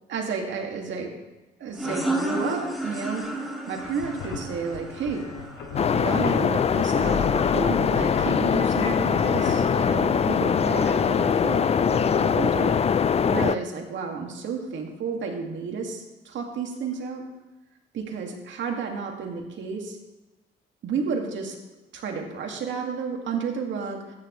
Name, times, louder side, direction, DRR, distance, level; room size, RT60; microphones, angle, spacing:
voice 1, 0.1-1.1 1.6-3.2 3.7-5.2 6.0-12.8 13.3-17.2 17.9-20.0 20.8-21.6 21.9-24.1, right 5 dB, 70° right, 1 dB, 2.1 m, -31 dB
sound 1, 1.7-7.1, right 2 dB, ahead, 2.0 m, -32 dB
sound 2, 3.8-10.6, left 5 dB, 85° left, 2.0 m, -36 dB
sound 3, 5.8-13.6, left 7 dB, 30° left, 0.4 m, -22 dB
14.5 x 9.8 x 3.2 m, 1.1 s
cardioid pair, 90°, 20 cm